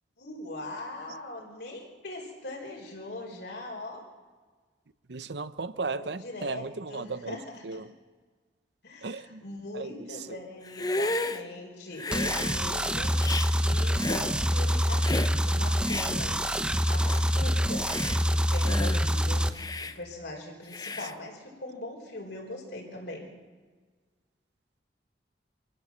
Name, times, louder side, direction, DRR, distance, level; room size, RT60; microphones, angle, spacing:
voice 1, 0.2-4.0 5.8-7.9 8.8-16.4 16.9-17.9 18.2-19.5 19.8-23.3, left 2 dB, 70° left, 1 dB, 4.7 m, -41 dB
voice 2, 5.1-7.4 7.6-7.9 9.0-9.4 9.7-9.9 10.3-10.4, right 4 dB, 75° right, 14 dB, 0.8 m, -35 dB
Hiss, 10.6-11.4 12.0-12.6 13.2-13.5 14.0-14.3 15.0-15.3 15.9-16.1 16.7-16.8 17.0-17.3 17.8-18.2 18.6-19.0 19.5-19.9 20.7-21.1, left 2 dB, 20° left, 0.8 m, -32 dB
sound 1, 12.1-19.5, equal, 5° right, 0.9 m, -26 dB
25.0 x 16.0 x 7.5 m, 1.4 s
head